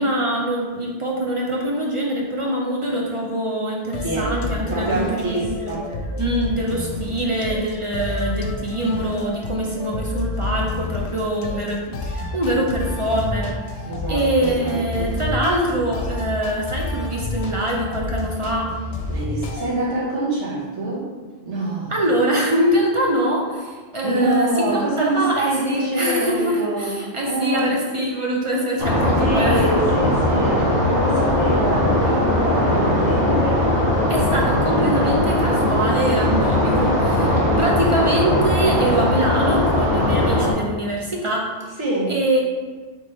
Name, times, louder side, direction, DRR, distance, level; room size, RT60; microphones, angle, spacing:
voice 1, 0.0-5.8 6.2-18.8 21.9-29.7 34.1-41.7 42.1-42.4, right 1 dB, 45° right, -2 dB, 0.4 m, -24 dB
sound 1, 3.9-19.7, left 2 dB, 70° left, 0.8 m, -29 dB
voice 2, 4.0-4.3 4.7-5.9 13.8-15.2 19.1-21.1 21.4-21.9 24.0-27.7 29.2-33.8 37.3-37.6 41.8-42.1, right 2 dB, 75° right, -7 dB, 1.6 m, -25 dB
sound 2, 28.8-40.5, left 1 dB, 25° right, 1.2 m, -19 dB
3.5 x 3.3 x 4.1 m, 1.4 s
omnidirectional pair, 1.2 m